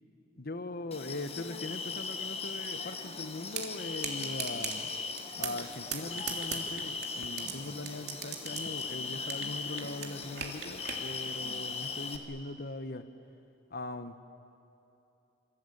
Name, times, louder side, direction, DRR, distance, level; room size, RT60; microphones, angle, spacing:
voice 1, 0.3-4.9 5.4-13.1 13.7-14.2, left 2 dB, 55° left, 10 dB, 1.3 m, -40 dB
sound 1, 0.9-12.2, left 4 dB, 35° left, 1.7 m, -39 dB
sound 2, 3.5-3.7 4.0-4.8 5.2-5.6 5.9-7.5 7.8-9.5 9.8-11.0, right 9 dB, 65° right, 3.1 m, -37 dB
28.0 x 24.5 x 8.6 m, 2.9 s
head